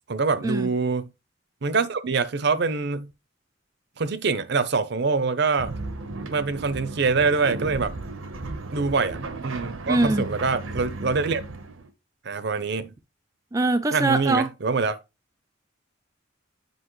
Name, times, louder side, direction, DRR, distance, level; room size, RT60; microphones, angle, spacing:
voice 1, 0.1-1.1 1.6-3.1 4.0-5.7 6.3-7.9 8.7-11.4 12.2-12.9 13.9-15.0, right 4 dB, 55° right, 0.6 m, -24 dB
sound 1, 5.6-11.9, right 2 dB, 90° right, 1.0 m, -35 dB
voice 2, 9.9-10.3 13.5-14.5, right 2 dB, 15° right, 0.4 m, -22 dB
7.9 x 5.3 x 3.1 m
head